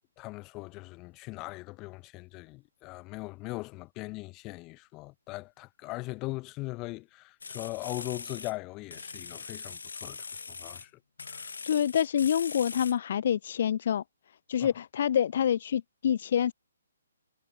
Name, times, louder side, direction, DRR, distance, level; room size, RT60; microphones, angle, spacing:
voice 1, 0.2-10.9 11.3-11.5 14.6-14.7, left 22 dB, 25° left, 2.3 m, -40 dB
sound 1, 7.4-8.6 8.9-10.9 11.2-13.0, left 5 dB, 80° left, 5.1 m, -41 dB
voice 2, 11.6-14.0 14.5-16.5, left 9 dB, 55° left, 0.4 m, -27 dB
hypercardioid pair, 145°, 0 cm